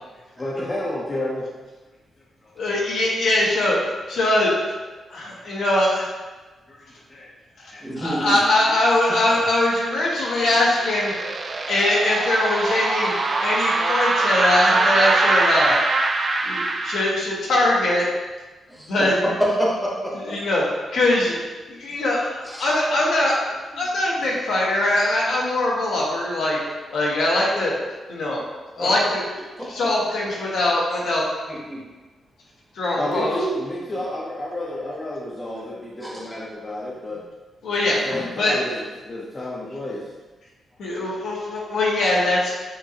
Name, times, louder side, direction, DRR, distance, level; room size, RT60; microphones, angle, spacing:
voice 1, 0.1-1.5 2.4-2.5 5.3-5.4 6.7-7.3 7.7-7.8 11.0-11.2 33.0-37.2 37.8-40.1, left 1 dB, 25° left, -5 dB, 0.6 m, -31 dB
voice 2, 2.6-3.8 4.1-4.5 5.1-6.1 7.6-7.7 8.0-11.1 11.7-13.1 13.4-15.8 16.4-18.0 18.9-19.1 20.3-20.6 20.9-21.3 21.7-23.3 23.7-26.6 26.9-27.7 28.1-28.4 28.7-29.2 29.7-31.2 32.7-33.4 37.6-38.0 38.4-38.5 40.8-42.5, left 1 dB, 80° left, -4 dB, 1.2 m, -21 dB
voice 3, 7.8-8.4 18.7-20.3 22.4-22.7 28.8-28.9 29.6-29.9 31.5-31.8 36.0-36.1 38.1-38.2, equal, ahead, -5 dB, 0.9 m, -27 dB
sound 1, 9.4-17.1, right 3 dB, 30° right, 0.3 m, -23 dB
7.1 x 2.6 x 2.8 m, 1.2 s
wide cardioid pair, 150°, 0 cm